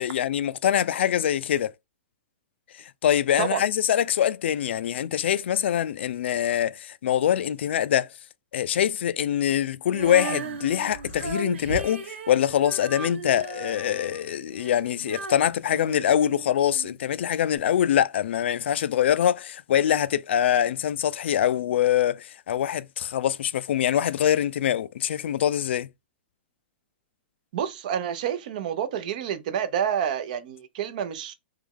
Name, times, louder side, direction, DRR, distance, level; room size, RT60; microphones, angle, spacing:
voice 1, 0.0-1.7 2.7-8.1 8.5-25.9, left 10 dB, 70° left, 0.4 m, -24 dB
Female singing, 9.9-16.9 17.5-17.6, right 5 dB, 80° right, 1.2 m, -36 dB
voice 2, 27.5-31.3, right 8 dB, 45° right, 0.6 m, -28 dB
3.4 x 3.1 x 3.6 m
hypercardioid pair, 170°, 6 cm